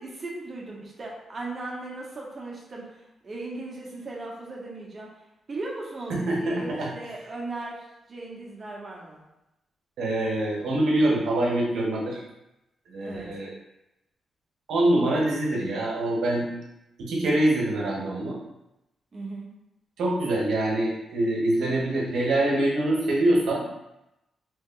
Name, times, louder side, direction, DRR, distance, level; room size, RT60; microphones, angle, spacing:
voice 1, 0.0-5.1 5.5-9.2 12.9-13.3 19.1-19.5, right 2 dB, 40° right, -2 dB, 0.9 m, -37 dB
voice 2, 6.1-6.9 10.0-12.2 12.9-13.5 14.7-16.5 17.0-18.4 20.0-23.6, right 1 dB, 85° right, -2 dB, 0.8 m, -24 dB
3.0 x 2.2 x 3.7 m, 0.90 s
cardioid pair, 85°, 0 cm